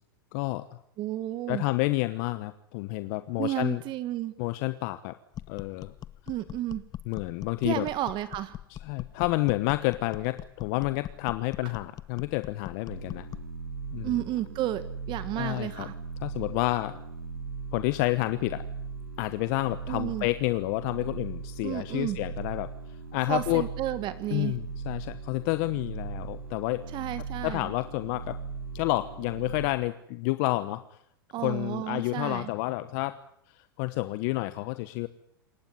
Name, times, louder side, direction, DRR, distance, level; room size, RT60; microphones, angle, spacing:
voice 1, 0.3-0.8 1.5-3.8 4.4-5.2 5.5-5.9 7.1-7.9 8.7-13.3 13.9-14.2 15.4-15.9 16.2-17.0 17.7-18.6 19.2-22.7 23.1-23.6 24.3-26.8 27.4-28.4 28.7-30.8 31.4-33.2 33.5-35.1, left 20 dB, 55° left, 12 dB, 1.1 m, -29 dB
voice 2, 1.0-1.6 3.4-4.3 6.3-6.8 7.6-8.6 14.0-15.9 19.9-20.2 21.6-22.2 23.3-24.5 26.9-27.7 31.3-32.5, right 14 dB, 40° right, 13 dB, 1.6 m, -32 dB
sound 1, 5.3-13.5, left 12 dB, 30° left, 0.9 m, -42 dB
sound 2, 12.9-29.7, right 4 dB, 80° right, 4.9 m, -39 dB
27.5 x 16.0 x 9.6 m, 0.76 s
hypercardioid pair, 105°, 12 cm